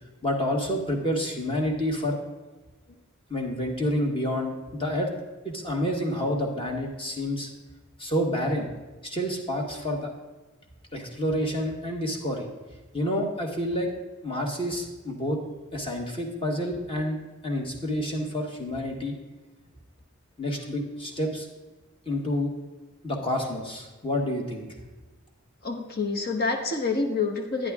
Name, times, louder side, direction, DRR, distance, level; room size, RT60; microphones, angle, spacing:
voice 1, 0.2-2.2 3.3-5.1 5.4-7.5 8.0-8.7 9.0-10.1 10.9-12.5 12.9-13.9 14.2-15.4 15.7-17.2 17.4-19.1 20.4-21.5 22.0-22.5 23.0-24.7, equal, 25° left, 1 dB, 1.5 m, -28 dB
voice 2, 25.6-27.7, left 4 dB, 45° left, 3 dB, 1.1 m, -27 dB
10.5 x 10.5 x 3.6 m, 1.2 s
head